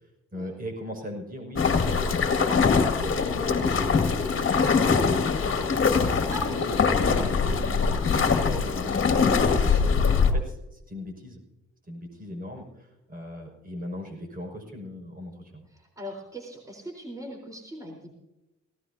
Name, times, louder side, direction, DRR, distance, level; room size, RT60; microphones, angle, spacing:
voice 1, 0.3-11.4 11.9-15.7, left 1 dB, 30° right, 2 dB, 6.0 m, -40 dB
sound 1, 1.5-10.3, left 5 dB, 40° left, 2.2 m, -23 dB
voice 2, 6.3-6.6 15.7-18.2, equal, 10° right, 0 dB, 4.1 m, -39 dB
18.5 x 18.0 x 2.8 m, 0.97 s
cardioid pair, 90°, 30 cm